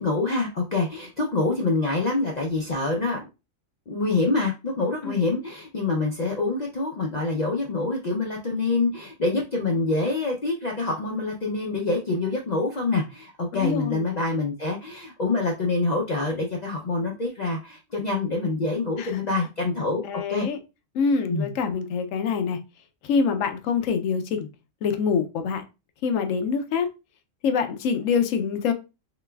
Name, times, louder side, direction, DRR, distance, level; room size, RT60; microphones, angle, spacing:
voice 1, 0.0-3.2 3.9-20.5 21.3-21.5, left 3 dB, 60° left, 0.4 m, -26 dB
voice 2, 13.5-14.0 19.0-19.1 20.0-20.6 20.9-22.6 23.0-24.5 24.8-25.6 26.0-26.9 27.4-28.7, left 5 dB, 75° left, 0.9 m, -25 dB
3.9 x 3.2 x 2.2 m
omnidirectional pair, 1.4 m